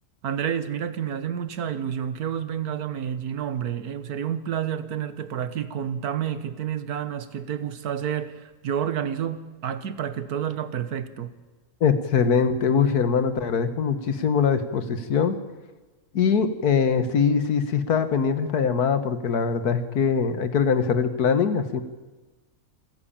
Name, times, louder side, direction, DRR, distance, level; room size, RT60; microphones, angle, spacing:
voice 1, 0.2-11.3, right 9 dB, 85° right, 1.7 m, -29 dB
voice 2, 11.8-15.4 16.1-21.8, left 6 dB, 85° left, 1.9 m, -22 dB
27.5 x 10.5 x 8.8 m
omnidirectional pair, 1.6 m